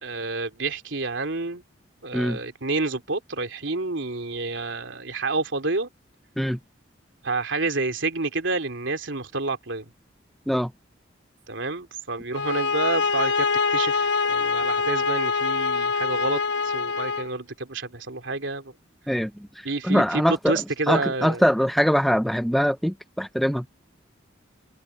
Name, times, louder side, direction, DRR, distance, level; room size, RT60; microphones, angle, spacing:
voice 1, 0.0-1.6 2.0-5.9 7.2-9.8 11.5-18.7 19.6-21.4, right 3 dB, 85° right, 3.0 m, -29 dB
sound 1, 12.3-17.3, left 4 dB, 65° left, 1.3 m, -24 dB
voice 2, 19.1-23.7, equal, ahead, 0.6 m, -23 dB
open air
head